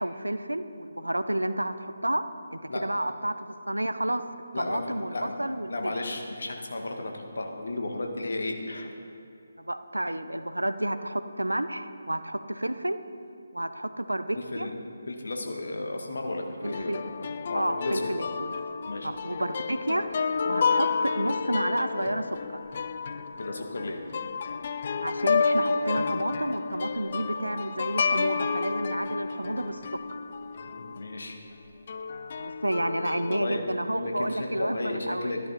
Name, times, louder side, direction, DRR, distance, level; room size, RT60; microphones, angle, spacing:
voice 1, 0.0-2.2 2.5-4.2 4.6-5.9 9.6-13.0 13.5-14.7 16.6-17.0 17.5-18.5 19.0-22.6 25.0-29.8 32.4-35.3, right 1 dB, 85° right, 11 dB, 0.7 m, -30 dB
voice 2, 4.5-5.3 5.7-8.9 14.3-14.7 15.1-18.3 18.8-19.1 20.5-20.6 23.4-24.0 30.7-31.4 33.3-33.6 33.9-35.4, left 2 dB, 60° left, 2 dB, 1.7 m, -34 dB
sound 1, 16.6-31.0 31.9-33.4, left 5 dB, 40° left, 0.4 m, -30 dB
13.5 x 11.0 x 4.2 m, 2.4 s
figure-of-eight pair, 150°, 0 cm